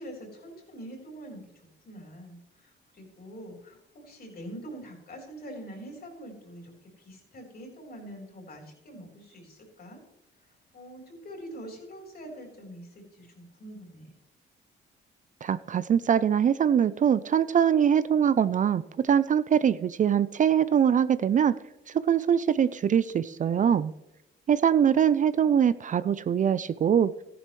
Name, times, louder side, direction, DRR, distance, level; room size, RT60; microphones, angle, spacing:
voice 1, 0.0-10.0 10.7-14.1, right 1 dB, 50° left, 1 dB, 4.0 m, -44 dB
voice 2, 15.4-21.5 22.1-23.9 24.5-27.1, right 8 dB, 40° right, 16 dB, 0.4 m, -23 dB
14.0 x 11.0 x 3.2 m, 0.87 s
cardioid pair, 90°, 20 cm